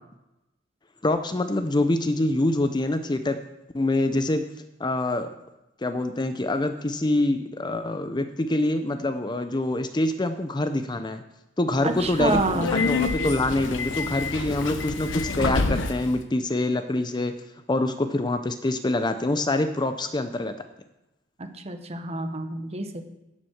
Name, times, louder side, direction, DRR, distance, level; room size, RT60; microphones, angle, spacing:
voice 1, 1.0-3.4 3.7-4.4 4.8-5.3 5.8-11.2 11.6-17.3 17.7-20.5, left 2 dB, 25° left, 9 dB, 0.6 m, -25 dB
voice 2, 11.8-12.8 21.4-23.0, right 2 dB, 35° right, 6 dB, 1.2 m, -28 dB
Subway metro underground, 11.9-16.1, left 3 dB, 80° left, 0.9 m, -28 dB
10.5 x 7.5 x 6.4 m, 0.95 s
head